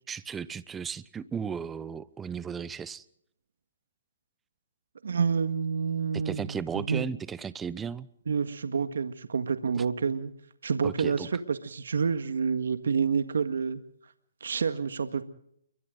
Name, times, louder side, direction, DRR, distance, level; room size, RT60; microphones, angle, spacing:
voice 1, 0.1-3.0 6.1-8.1 9.8-9.9 10.8-11.3, right 6 dB, 10° right, 17 dB, 0.8 m, -35 dB
voice 2, 5.0-7.0 8.3-10.3 10.6-13.8 14.4-15.2, right 5 dB, 75° right, 9 dB, 1.7 m, -28 dB
29.5 x 23.5 x 3.9 m, 0.72 s
hypercardioid pair, 150°, 0 cm